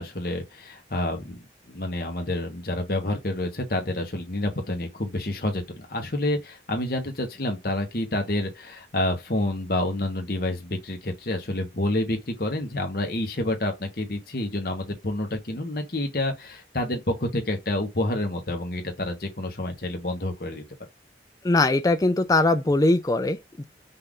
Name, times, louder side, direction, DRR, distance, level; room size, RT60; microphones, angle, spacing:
voice 1, 0.0-20.6, left 1 dB, 55° left, 1.2 m, -28 dB
voice 2, 21.4-23.6, left 2 dB, 20° left, 0.4 m, -21 dB
5.5 x 2.6 x 3.6 m
head